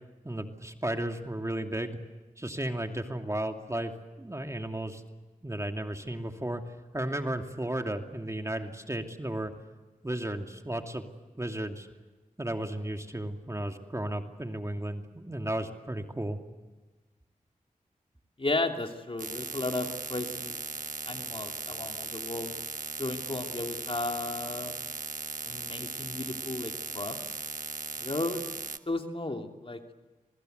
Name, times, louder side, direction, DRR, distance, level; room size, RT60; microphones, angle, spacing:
voice 1, 0.2-2.0 2.4-3.9 4.2-5.0 5.4-6.6 6.9-9.5 10.0-11.1 11.4-11.9 12.4-16.4, right 1 dB, 20° right, 5 dB, 2.7 m, -34 dB
voice 2, 18.4-20.6 21.1-22.5 23.0-24.7 25.4-27.2 28.0-28.4 28.9-29.8, left 2 dB, 40° left, 4 dB, 2.9 m, -34 dB
sound 1, 19.2-28.8, right 5 dB, 70° right, 1.2 m, -38 dB
27.5 x 21.0 x 8.1 m, 1.2 s
cardioid pair, 45°, 14 cm